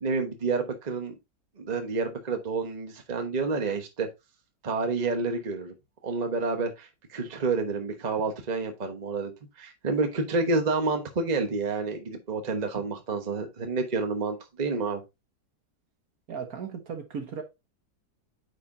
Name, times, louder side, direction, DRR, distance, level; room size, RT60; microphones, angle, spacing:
voice 1, 0.0-1.1 1.6-4.1 4.6-5.7 6.0-9.3 9.6-15.0, right 4 dB, 30° right, 1.1 m, -29 dB
voice 2, 16.3-17.4, right 6 dB, 60° right, 1.5 m, -36 dB
9.3 x 5.0 x 2.7 m
omnidirectional pair, 1.8 m